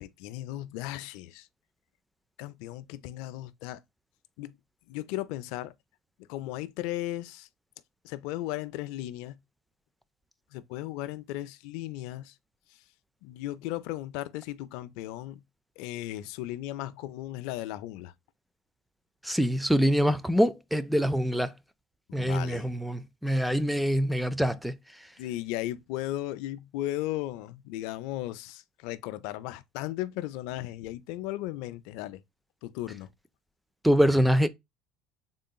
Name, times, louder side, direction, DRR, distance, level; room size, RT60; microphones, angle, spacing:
voice 1, 0.0-1.5 2.4-3.8 4.4-4.5 4.9-5.7 6.3-7.5 8.0-9.4 10.5-12.3 13.2-15.4 15.8-18.1 22.2-22.7 25.2-32.2 32.6-33.1, left 15 dB, 75° left, 0.4 m, -36 dB
voice 2, 19.2-21.5 22.1-24.7 33.8-34.5, equal, ahead, 0.4 m, -24 dB
3.7 x 3.7 x 2.2 m
supercardioid pair, 110°, 0 cm